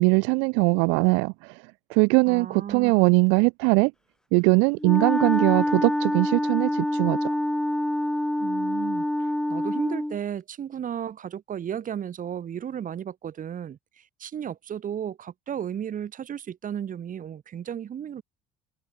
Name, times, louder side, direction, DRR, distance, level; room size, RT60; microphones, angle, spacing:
voice 1, 0.0-1.6 1.9-3.9 4.3-7.3, right 33 dB, 70° right, 0.5 m, -21 dB
voice 2, 2.3-3.2 8.4-18.2, right 9 dB, 40° right, 1.2 m, -34 dB
Wind instrument woodwind instrument, 4.8-10.2, left 1 dB, 5° left, 0.4 m, -26 dB
hypercardioid pair, 65°, 20 cm